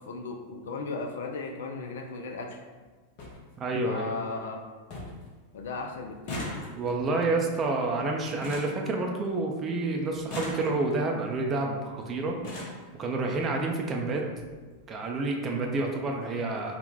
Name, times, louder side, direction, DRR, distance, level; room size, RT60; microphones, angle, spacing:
voice 1, 0.1-2.6 3.8-4.6 5.5-6.5, left 3 dB, 60° left, 3 dB, 0.3 m, -36 dB
sound 1, 2.8-2.9 3.2-3.4 3.8-4.3 4.6-4.7 4.9-5.3 5.5-9.5 10.1-11.1 11.9-12.0 12.3-12.9 13.8-13.9 14.2-14.4 14.7-14.8, left 1 dB, 45° left, 0.8 m, -40 dB
voice 2, 3.6-4.2 6.8-12.4 13.0-14.3 14.9-16.8, right 3 dB, 25° right, 1 dB, 0.5 m, -29 dB
3.7 x 2.1 x 4.0 m, 1.4 s
figure-of-eight pair, 90°, 0 cm